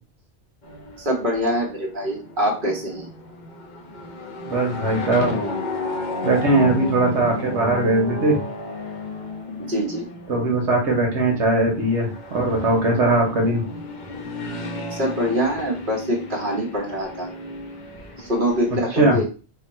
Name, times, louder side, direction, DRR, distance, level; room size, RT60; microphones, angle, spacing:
sound 1, 0.6-18.8, left 2 dB, 50° left, 0.8 m, -33 dB
voice 1, 1.0-3.1 9.6-10.1 14.9-17.3 18.2-19.3, equal, 50° right, -2 dB, 1.4 m, -24 dB
voice 2, 4.5-5.4 6.2-8.4 10.3-13.6 18.9-19.2, right 2 dB, 85° right, 0 dB, 1.3 m, -20 dB
3.6 x 2.2 x 4.1 m, 0.35 s
omnidirectional pair, 1.1 m